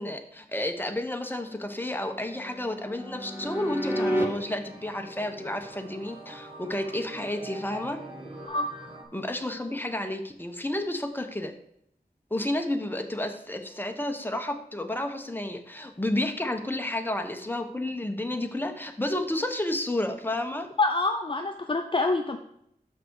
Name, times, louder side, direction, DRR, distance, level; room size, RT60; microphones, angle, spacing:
voice 1, 0.0-8.0 9.1-11.5 12.3-20.7, left 1 dB, 10° left, 5 dB, 1.0 m, -31 dB
Piano suspenses, 1.4-4.3 7.2-8.5, equal, 15° right, 1.8 m, -33 dB
sound 1, 3.4-9.0, right 1 dB, 35° right, 1.7 m, -44 dB
voice 2, 20.8-22.4, left 3 dB, 30° left, 5 dB, 0.5 m, -26 dB
6.5 x 5.9 x 4.7 m, 0.74 s
wide cardioid pair, 65°, 16 cm